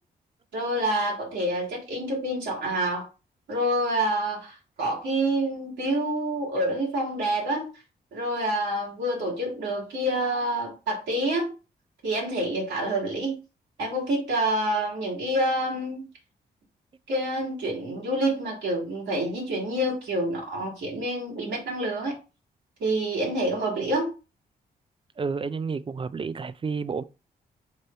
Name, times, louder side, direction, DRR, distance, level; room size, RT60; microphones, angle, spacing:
voice 1, 0.5-3.0 3.5-7.7 8.1-11.5 12.0-13.4 13.8-16.0 17.1-22.2 22.8-24.1, right 1 dB, 75° right, 1.9 m, -27 dB
voice 2, 25.2-27.0, right 5 dB, 30° right, 0.3 m, -30 dB
3.4 x 2.5 x 4.3 m
supercardioid pair, 50°, 19 cm